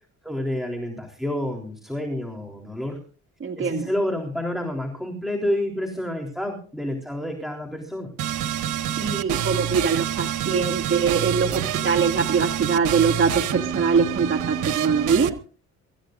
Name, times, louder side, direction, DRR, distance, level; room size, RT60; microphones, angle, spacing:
voice 1, 0.2-3.0 3.6-8.1, left 1 dB, ahead, 2 dB, 3.8 m, -29 dB
voice 2, 3.4-3.9 9.0-15.4, right 5 dB, 40° right, 1 dB, 2.2 m, -23 dB
sound 1, 8.2-15.3, right 10 dB, 80° right, 1.4 m, -27 dB
25.5 x 14.5 x 2.6 m, 0.39 s
cardioid pair, 90°, 30 cm